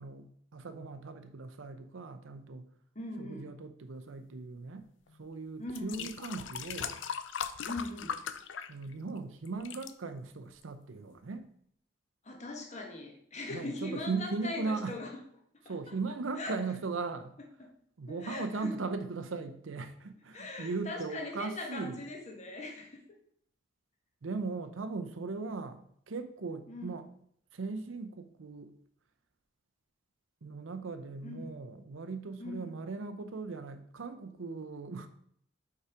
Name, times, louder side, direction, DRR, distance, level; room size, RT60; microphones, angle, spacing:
voice 1, 0.0-2.7 3.2-4.9 5.2-7.0 8.7-11.5 13.5-15.0 15.6-17.4 18.0-22.0 24.2-27.1 27.5-28.7 30.4-35.1, right 4 dB, 80° right, 9 dB, 0.6 m, -38 dB
voice 2, 2.9-3.5 5.6-6.1 7.6-8.2 12.2-15.1 15.6-15.9 16.4-16.6 18.1-18.7 20.3-23.2 26.7-26.9 31.2-31.5 32.4-32.7, left 2 dB, 35° left, 2 dB, 1.3 m, -40 dB
sound 1, 5.1-5.2 5.7-9.2 9.5-9.9 10.6-10.7, left 7 dB, 70° left, 0.5 m, -39 dB
5.5 x 4.7 x 4.9 m, 0.66 s
head